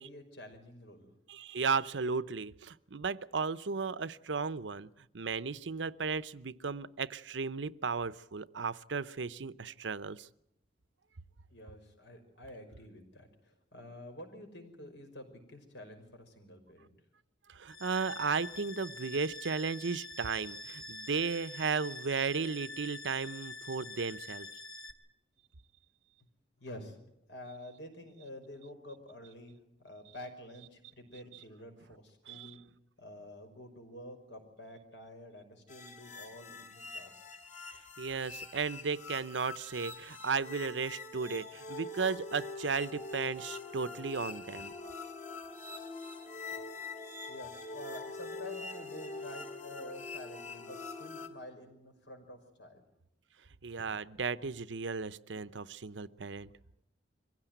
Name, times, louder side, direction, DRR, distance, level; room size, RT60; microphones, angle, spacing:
voice 1, 0.0-1.1 11.5-16.9 26.6-27.0 27.3-32.6 33.0-37.2 39.8-39.9 41.6-41.7 44.8-45.0 47.3-52.8 53.8-53.9 55.3-55.8, left 1 dB, 80° left, 5 dB, 5.6 m, -49 dB
voice 2, 1.3-4.9 5.1-10.3 17.5-24.5 32.3-32.5 38.0-44.7 53.6-56.5, right 5 dB, 85° right, 16 dB, 0.8 m, -35 dB
sound 1, 17.7-24.9, left 2 dB, 20° left, 1.6 m, -46 dB
sound 2, 35.7-51.3, left 3 dB, 40° left, 2.7 m, -44 dB
23.5 x 16.0 x 9.1 m, 0.82 s
head